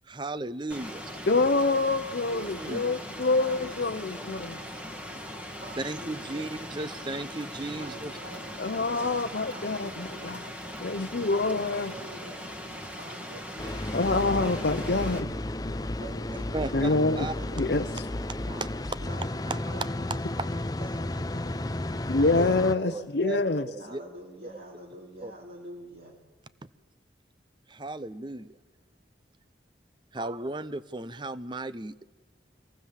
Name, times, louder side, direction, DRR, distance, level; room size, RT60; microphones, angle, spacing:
voice 1, 0.1-1.0 2.6-2.8 5.8-8.1 16.5-17.3 18.5-18.7 19.5-19.6 22.3-22.6 22.9-24.0 25.2-25.3 27.7-28.6 30.1-32.0, right 2 dB, 25° right, 15 dB, 0.7 m, -35 dB
Rain, 0.7-15.2, equal, 10° right, 2.4 m, -40 dB
voice 2, 1.3-4.6 8.6-10.5 10.8-11.9 13.9-15.3 16.7-17.3 17.6-17.8 22.1-23.7, left 3 dB, 65° left, 4 dB, 0.8 m, -26 dB
voice 3, 2.2-3.0 3.3-4.3 5.5-6.6 7.7-10.4 11.3-12.5 13.0-15.2 16.0-16.9 17.1-18.0 19.0-23.1 23.8-26.2, right 1 dB, 60° right, -2 dB, 3.6 m, -46 dB
sound 1, 13.6-22.7, left 1 dB, 20° left, 0.6 m, -33 dB
24.5 x 18.5 x 7.5 m, 1.3 s
head